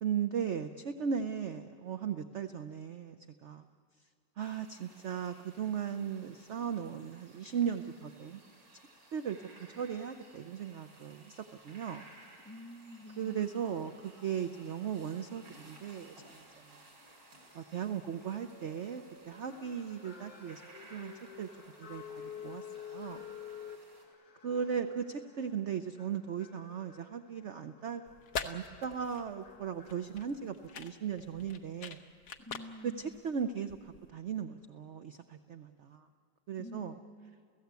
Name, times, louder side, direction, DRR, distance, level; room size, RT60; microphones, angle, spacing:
voice 1, 0.0-3.2 3.4-3.6 4.4-8.4 9.1-9.4 9.8-12.0 13.2-16.4 17.5-20.6 20.9-21.1 21.4-21.5 21.8-23.2 24.4-28.0 28.4-32.0 32.8-33.8 34.1-36.1 36.5-36.9, right 7 dB, 55° right, 9 dB, 0.8 m, -37 dB
sound 1, 4.4-24.1, right 2 dB, 90° right, 5.1 m, -59 dB
voice 2, 12.4-13.5 32.4-33.2 36.6-37.3, left 1 dB, 10° left, 1 dB, 1.4 m, -49 dB
sound 2, 13.3-30.7, left 7 dB, 45° left, 2.0 m, -52 dB
sound 3, 28.1-34.1, left 5 dB, 70° left, 1.7 m, -44 dB
30.0 x 16.5 x 8.2 m, 2.2 s
omnidirectional pair, 1.9 m